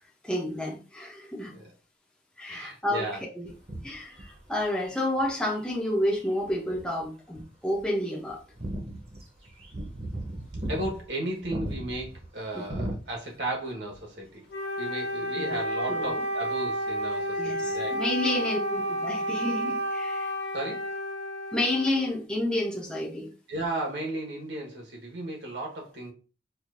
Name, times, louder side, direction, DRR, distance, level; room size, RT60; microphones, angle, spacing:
voice 1, 0.2-1.6 2.4-3.1 3.4-3.5 3.8-8.4 12.5-12.7 15.4-15.6 15.9-16.1 17.4-20.3 21.5-23.3, left 1 dB, 5° left, 0.6 m, -30 dB
voice 2, 2.5-3.2 10.7-14.4 14.8-18.0 20.5-20.9 23.5-26.1, right 1 dB, 75° right, 1.3 m, -35 dB
sound 1, 3.4-5.6 6.2-7.0 7.3-7.4 7.7-7.8 8.3-13.6 13.8-14.0 15.5-15.6, right 1 dB, 35° right, 0.8 m, -37 dB
Wind instrument woodwind instrument, 14.5-22.2, equal, 70° left, 0.7 m, -31 dB
4.6 x 2.5 x 2.5 m
head